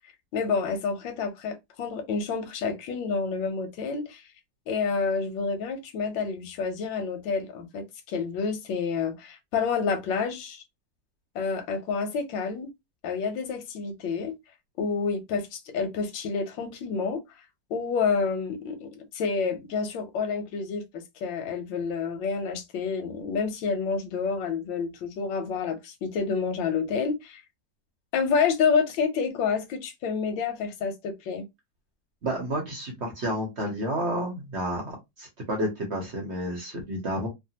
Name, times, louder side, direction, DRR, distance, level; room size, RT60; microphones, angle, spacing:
voice 1, 0.3-4.3 4.7-10.6 11.3-12.7 13.0-14.3 14.8-17.2 17.7-27.4 28.1-31.5, left 5 dB, 90° left, 1.4 m, -29 dB
voice 2, 32.2-37.3, right 1 dB, 50° right, 0.9 m, -30 dB
3.3 x 2.2 x 2.7 m
omnidirectional pair, 2.0 m